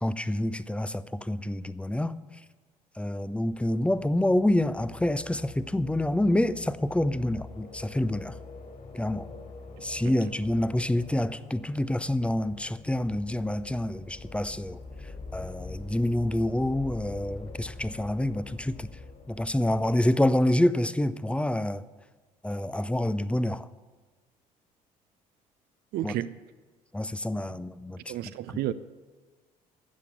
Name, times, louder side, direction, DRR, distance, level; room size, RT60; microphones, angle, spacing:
voice 1, 0.0-2.1 3.0-8.3 8.9-9.3 9.8-14.8 15.3-18.9 19.3-21.8 22.4-23.7 26.0-26.1 26.9-28.0, left 1 dB, 5° left, 0.6 m, -27 dB
sound 1, 3.4-20.4, left 3 dB, 40° left, 3.2 m, -45 dB
voice 2, 25.9-26.3 28.1-28.7, right 13 dB, 55° right, 0.6 m, -31 dB
13.0 x 8.4 x 8.1 m
hypercardioid pair, 55°, 19 cm